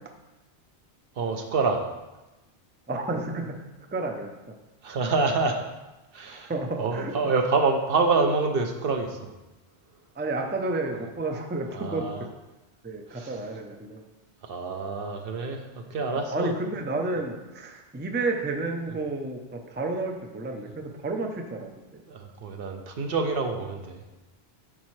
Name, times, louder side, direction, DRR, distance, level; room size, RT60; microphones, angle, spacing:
voice 1, 1.2-1.8 4.8-5.6 6.1-6.5 6.8-9.3 11.7-12.2 13.1-13.4 14.4-16.5 22.1-24.0, right 4 dB, 65° right, 4 dB, 0.9 m, -27 dB
voice 2, 2.9-3.6 3.9-4.3 6.5-7.1 10.2-12.1 12.8-14.0 16.1-22.0, right 2 dB, 15° right, 3 dB, 0.4 m, -31 dB
9.9 x 4.2 x 3.2 m, 1.1 s
omnidirectional pair, 1.1 m